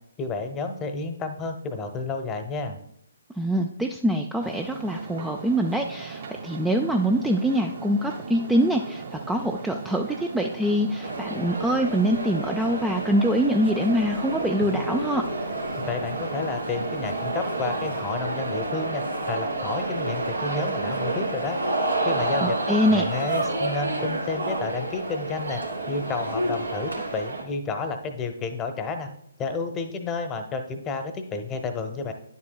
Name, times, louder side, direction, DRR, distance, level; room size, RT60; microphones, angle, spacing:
voice 1, 0.2-2.8 15.8-21.6 22.0-25.6 25.9-29.1 29.4-32.1, left 4 dB, 15° left, 7 dB, 0.8 m, -31 dB
voice 2, 3.4-15.3 22.4-23.0, equal, 5° right, 3 dB, 0.3 m, -24 dB
sound 1, 4.4-18.2, right 4 dB, 45° right, 1.6 m, -38 dB
sound 2, 11.0-27.4, right 2 dB, 85° right, 1.5 m, -29 dB
10.0 x 7.4 x 2.3 m, 0.73 s
figure-of-eight pair, 135°, 0 cm